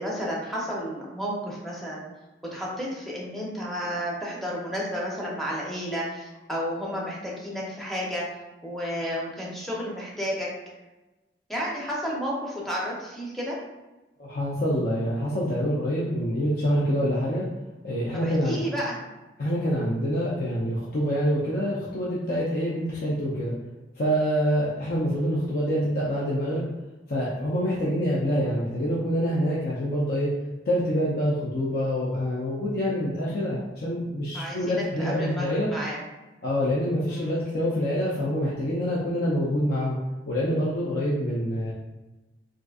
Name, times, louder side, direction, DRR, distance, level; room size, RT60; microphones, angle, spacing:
voice 1, 0.0-2.1 2.5-8.2 8.6-10.5 11.5-13.6 18.1-19.0 34.3-36.0 37.1-37.4, equal, ahead, -5 dB, 0.7 m, -32 dB
voice 2, 14.2-17.5 17.8-18.6 19.4-23.5 24.0-26.7 27.1-30.3 30.7-35.7 36.4-40.0 40.3-41.7, equal, 55° left, -6 dB, 0.5 m, -26 dB
3.7 x 2.5 x 2.3 m, 1.1 s
head